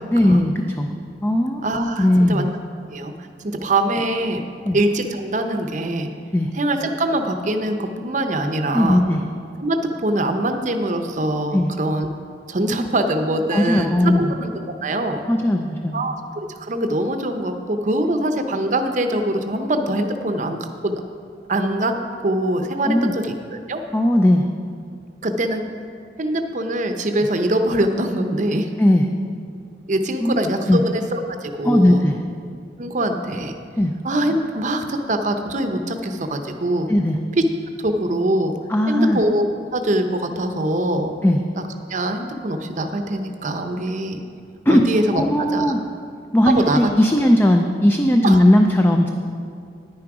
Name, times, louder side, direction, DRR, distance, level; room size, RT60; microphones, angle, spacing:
voice 1, 0.1-0.9 1.2-1.7 2.0-2.5 4.7-4.8 6.3-6.5 8.7-9.2 11.5-11.7 13.5-14.3 15.3-16.1 22.9-23.1 23.9-24.4 28.8-29.1 30.2-30.8 31.6-32.2 33.8-33.9 36.9-37.2 38.7-39.2 41.2-41.4 44.7-44.8 45.1-45.8 46.3-49.1, left 1 dB, 10° left, 4 dB, 0.4 m, -17 dB
voice 2, 1.6-2.5 2.9-3.1 3.4-4.4 4.7-6.1 6.5-9.0 9.6-12.1 12.5-14.5 14.8-15.2 15.9-21.0 21.5-21.9 22.2-23.8 25.2-25.6 26.2-28.7 29.9-32.0 32.8-33.5 34.0-36.9 37.8-38.5 38.9-39.5 39.7-41.1 41.5-41.6 41.9-44.2 44.7-45.2 45.5-45.7 46.6-46.9 48.2-48.4, right 1 dB, 45° right, 6 dB, 0.7 m, -23 dB
10.0 x 9.7 x 4.8 m, 2.3 s
head